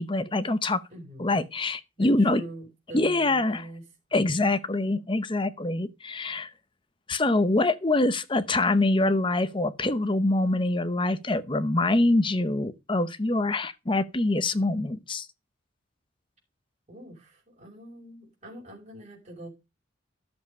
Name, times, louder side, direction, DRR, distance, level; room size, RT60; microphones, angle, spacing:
voice 1, 0.0-0.8 1.2-2.4 2.9-3.6 4.1-6.5 7.1-15.3, left 2 dB, 25° left, 0.8 m, -25 dB
voice 2, 0.9-1.4 2.0-3.8 4.1-5.0 16.9-19.5, right 1 dB, 30° right, 5.5 m, -44 dB
12.0 x 7.5 x 5.2 m
head